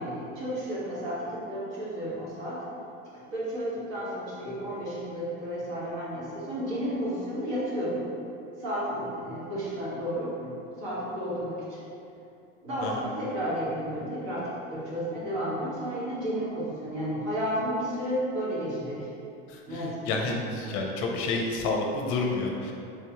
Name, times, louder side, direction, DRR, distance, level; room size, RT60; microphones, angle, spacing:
voice 1, 0.0-2.6 3.3-8.0 8.6-11.8 12.6-19.1 19.7-20.2, equal, 60° right, -8 dB, 1.4 m, -32 dB
voice 2, 19.5-22.7, left 3 dB, 50° left, 1 dB, 0.6 m, -30 dB
3.4 x 3.2 x 2.9 m, 2.7 s
supercardioid pair, 155°, 29 cm